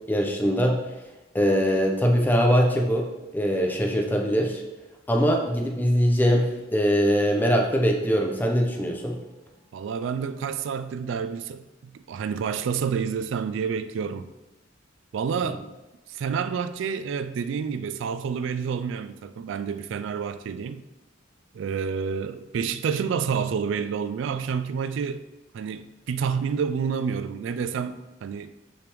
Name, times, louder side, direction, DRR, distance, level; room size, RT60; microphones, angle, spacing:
voice 1, 0.1-0.8 1.3-4.6 5.1-9.2, equal, 10° left, 0.7 m, -22 dB
voice 2, 9.7-14.3 15.1-15.6 16.1-20.8 21.5-25.2 25.5-28.5, right 6 dB, 65° right, 0.3 m, -29 dB
6.8 x 5.1 x 3.1 m
head